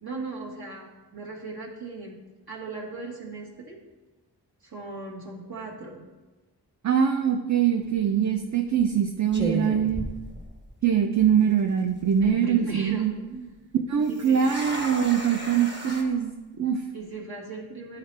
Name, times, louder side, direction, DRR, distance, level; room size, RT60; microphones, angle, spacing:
voice 1, 0.0-2.2 2.5-3.8 4.6-6.1 12.2-13.7 14.1-14.5 16.9-18.0, right 3 dB, 65° right, -4 dB, 1.6 m, -38 dB
voice 2, 6.8-10.1 10.8-13.1 13.9-16.8, right 8 dB, 45° right, 4 dB, 0.5 m, -23 dB
sound 1, 7.8-8.1 8.8-9.0 9.3-10.9 11.2-11.3 11.9-12.3 14.0-16.0, right 1 dB, 25° right, 1.2 m, -34 dB
11.0 x 4.8 x 3.3 m, 1.2 s
wide cardioid pair, 85°, 40 cm